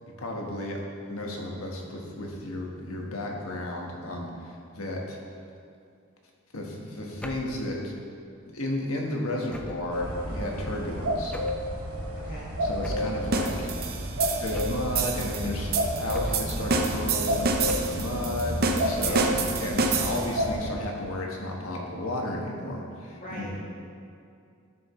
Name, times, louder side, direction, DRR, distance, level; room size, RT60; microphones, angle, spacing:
voice 1, 0.2-0.8 1.1-5.2 6.5-7.9 8.5-11.3 12.6-14.1 14.4-23.5, left 1 dB, 80° left, -1 dB, 1.4 m, -33 dB
sound 1, 7.2-7.6 9.5-10.0 11.3-11.7 12.8-13.2 14.5-15.0 16.1-16.6 17.7-18.1, equal, 5° left, 0.5 m, -38 dB
sound 2, 9.9-20.7, equal, 85° right, 1.1 m, -31 dB
sound 3, 13.3-20.4, right 3 dB, 45° right, 0.7 m, -29 dB
voice 2, 18.9-19.4 23.1-23.6, equal, 40° left, -6 dB, 1.9 m, -39 dB
12.0 x 6.8 x 3.2 m, 2.4 s
head